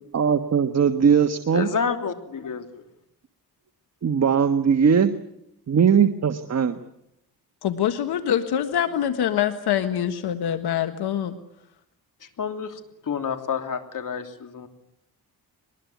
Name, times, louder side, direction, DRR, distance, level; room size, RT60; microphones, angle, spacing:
voice 1, 0.1-1.7 4.0-5.1 5.7-6.8, right 7 dB, 40° right, 8 dB, 1.4 m, -19 dB
voice 2, 1.5-2.8 12.2-14.7, left 6 dB, 55° left, 6 dB, 3.2 m, -29 dB
voice 3, 7.6-11.4, left 10 dB, 80° left, 9 dB, 1.6 m, -24 dB
22.5 x 20.5 x 9.3 m, 0.81 s
cardioid pair, 90°, 39 cm